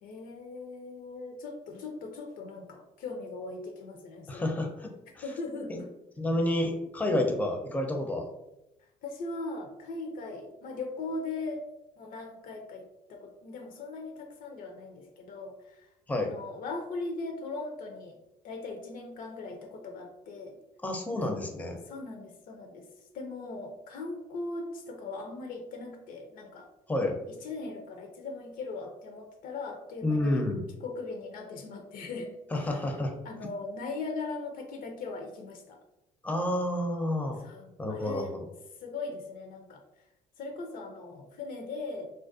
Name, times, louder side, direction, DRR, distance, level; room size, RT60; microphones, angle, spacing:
voice 1, 0.0-4.5 5.2-5.9 7.0-7.4 9.0-11.6 12.0-12.8 13.1-15.9 16.2-18.2 18.4-20.6 21.9-22.9 23.1-26.7 27.3-30.4 30.8-32.8 33.2-35.8 37.4-38.4 38.8-39.8 40.4-42.1, left 3 dB, 65° left, 3 dB, 0.5 m, -39 dB
voice 2, 4.3-4.9 5.1-5.2 5.7-5.8 6.2-8.3 16.1-16.3 20.8-21.8 26.9-27.2 30.0-30.6 32.5-33.1 36.2-37.4 37.8-38.2, left 1 dB, 10° left, 2 dB, 0.5 m, -29 dB
2.4 x 2.1 x 2.4 m, 0.91 s
supercardioid pair, 70°, 15 cm